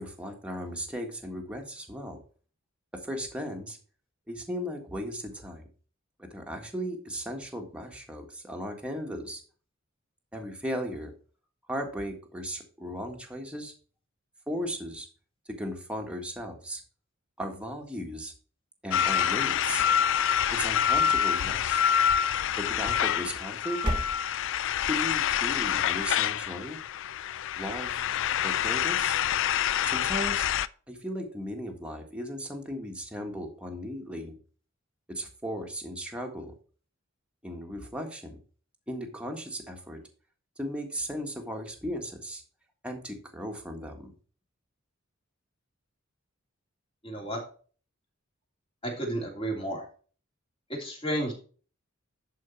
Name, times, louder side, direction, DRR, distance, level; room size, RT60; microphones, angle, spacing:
voice 1, 0.0-2.2 3.0-3.8 4.3-5.7 6.2-9.4 10.3-11.1 11.7-13.7 14.5-15.1 15.5-16.8 17.4-18.3 18.8-19.9 20.5-21.8 22.5-23.8 24.9-26.8 27.6-28.1 28.4-29.2 29.8-30.5 30.9-34.4 35.1-36.5 37.4-38.4 38.9-40.0 40.6-42.4 42.8-44.1, equal, 5° right, 2 dB, 1.6 m, -36 dB
sound 1, 18.9-30.7, left 9 dB, 65° left, 0.4 m, -27 dB
sound 2, 19.6-20.8 21.3-22.0 22.9-23.4 23.7-24.7, right 1 dB, 25° right, 1.4 m, -36 dB
voice 2, 47.0-47.4 48.8-49.8 50.7-51.3, right 1 dB, 25° left, 0 dB, 3.1 m, -32 dB
11.0 x 4.6 x 4.5 m, 0.40 s
head